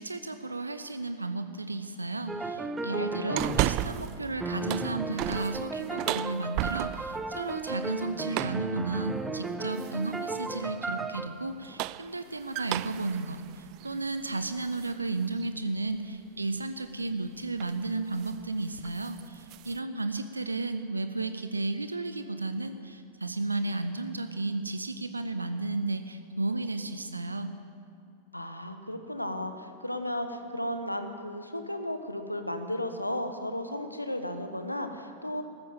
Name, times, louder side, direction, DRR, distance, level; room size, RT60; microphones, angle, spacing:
voice 1, 0.0-27.6, right 3 dB, 80° right, 10 dB, 0.6 m, -33 dB
sound 1, 2.3-11.3, right 3 dB, 10° right, 0.8 m, -35 dB
voice 2, 2.9-3.4 28.3-35.4, left 1 dB, 85° left, 8 dB, 1.1 m, -34 dB
sound 2, 3.4-4.2 4.5-7.2 8.3-8.7 9.8-10.2 11.5-14.9 15.4-15.5 17.0-17.3 17.6-17.8 18.2-18.4 18.7-19.8, right 17 dB, 40° right, 0.3 m, -34 dB
14.0 x 13.5 x 7.4 m, 2.6 s
figure-of-eight pair, 90°, 0 cm